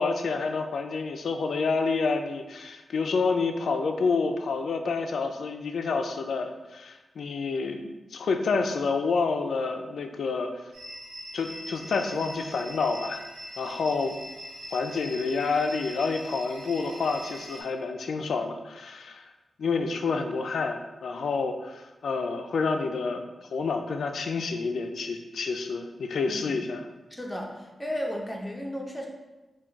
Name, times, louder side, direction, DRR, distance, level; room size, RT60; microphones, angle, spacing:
voice 1, 0.0-10.6 11.3-13.2 13.6-14.2 14.7-19.3 19.6-23.2 23.5-26.8, left 4 dB, 80° left, 5 dB, 0.3 m, -28 dB
sound 1, 10.7-17.6, equal, 75° right, 1.1 m, -42 dB
voice 2, 27.2-29.1, equal, 10° left, -1 dB, 0.6 m, -34 dB
3.7 x 2.3 x 4.4 m, 1.1 s
wide cardioid pair, 125°, 0 cm